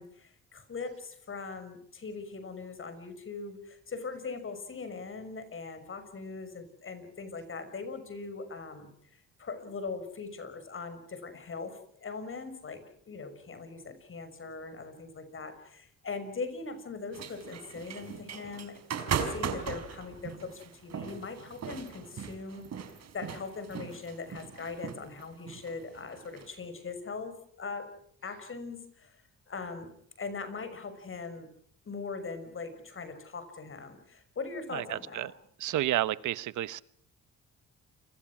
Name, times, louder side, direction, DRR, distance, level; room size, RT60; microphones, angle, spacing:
voice 1, 0.0-8.9 9.4-22.6 23.1-27.9 28.2-29.2 29.5-29.9 30.2-31.5 31.8-35.3, left 4 dB, 45° left, 10 dB, 6.1 m, -41 dB
sound 1, 17.1-26.5, right 7 dB, 60° right, 4.4 m, -38 dB
voice 2, 34.7-35.3 35.6-36.8, right 14 dB, 75° right, 17 dB, 1.1 m, -31 dB
29.0 x 23.5 x 6.2 m, 0.65 s
cardioid pair, 90°, 30 cm